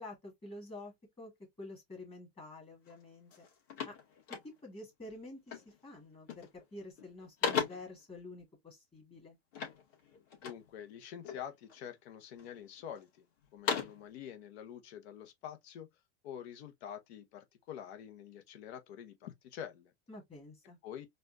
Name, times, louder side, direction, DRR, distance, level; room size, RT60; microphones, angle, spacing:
voice 1, 0.0-1.3 1.6-3.5 3.8-3.9 4.3-9.4 20.1-20.8, left 2 dB, 15° left, 1.8 m, -49 dB
sound 1, 2.8-3.0 3.3-4.9 5.5-5.8 6.1-6.6 7.0-8.0 9.5-10.7 11.2-11.9 12.4-13.0 13.4-14.1, left 7 dB, 40° left, 1.9 m, -38 dB
voice 2, 10.4-13.3 13.5-15.9 16.2-19.9 20.8-21.1, left 9 dB, 70° left, 0.9 m, -47 dB
4.2 x 2.5 x 2.6 m
supercardioid pair, 140°, 33 cm